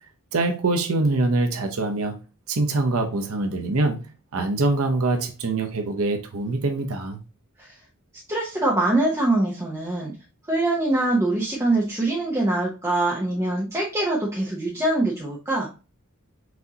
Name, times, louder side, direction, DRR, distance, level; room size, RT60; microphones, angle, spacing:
voice 1, 0.3-2.1 2.5-7.2, right 2 dB, 80° right, 0.7 m, -24 dB
voice 2, 8.3-10.1 10.5-15.7, right 2 dB, 15° right, 0.8 m, -23 dB
6.0 x 2.7 x 2.8 m
head